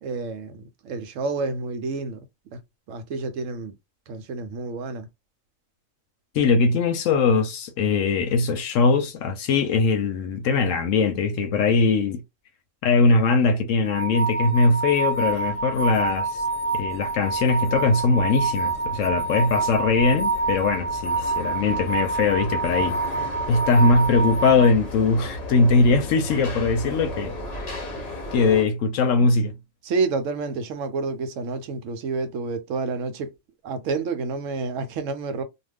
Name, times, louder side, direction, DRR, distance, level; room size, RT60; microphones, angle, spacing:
voice 1, 0.0-2.2 2.5-2.6 2.9-3.7 4.1-5.1 29.8-33.3 33.6-35.4, right 4 dB, 70° right, 0.9 m, -29 dB
voice 2, 6.3-12.2 12.8-16.4 16.7-23.0 23.5-27.3 28.3-29.5, left 4 dB, 70° left, 0.9 m, -21 dB
sound 1, 13.9-24.7, right 3 dB, 10° right, 0.7 m, -27 dB
sound 2, 14.8-28.6, left 1 dB, 40° left, 0.6 m, -36 dB
2.5 x 2.2 x 3.4 m
omnidirectional pair, 1.5 m